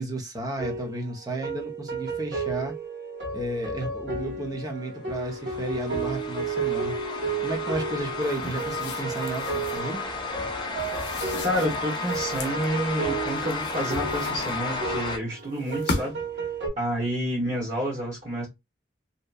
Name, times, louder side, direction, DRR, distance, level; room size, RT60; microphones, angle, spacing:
voice 1, 0.0-2.7 3.3-10.5, right 1 dB, 20° right, 0.6 m, -33 dB
sound 1, 0.6-16.7, right 4 dB, 70° right, 1.4 m, -33 dB
sound 2, 5.1-15.2, left 4 dB, 25° left, 0.4 m, -33 dB
sound 3, 8.2-9.9 10.8-12.6 13.3-14.9 15.5-16.4, left 2 dB, 65° left, 0.6 m, -37 dB
voice 2, 11.4-16.1 16.8-18.5, equal, 40° right, 1.2 m, -29 dB
2.8 x 2.2 x 2.2 m
head